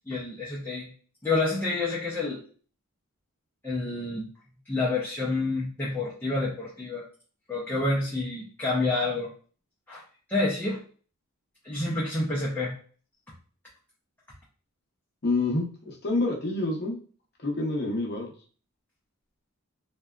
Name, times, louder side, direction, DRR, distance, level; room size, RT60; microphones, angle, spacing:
voice 1, 0.1-0.9 1.2-2.4 3.6-4.3 4.7-7.0 7.5-9.3 9.9-10.0 10.3-10.8 11.6-12.8, left 2 dB, 10° left, -7 dB, 0.5 m, -28 dB
voice 2, 15.2-17.0 17.4-18.3, left 2 dB, 50° left, -1 dB, 0.7 m, -27 dB
2.6 x 2.2 x 2.3 m, 0.41 s
head